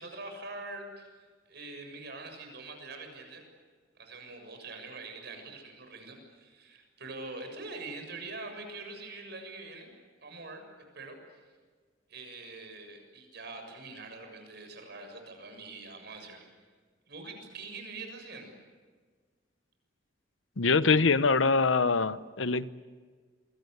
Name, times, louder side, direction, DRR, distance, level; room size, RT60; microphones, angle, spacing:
voice 1, 0.0-3.4 4.0-9.9 10.2-10.6 10.9-11.4 12.1-16.5 17.1-18.5, right 3 dB, 60° right, 5 dB, 7.1 m, -44 dB
voice 2, 20.6-22.7, left 4 dB, 85° left, 14 dB, 1.0 m, -24 dB
28.5 x 23.0 x 8.1 m, 1.5 s
head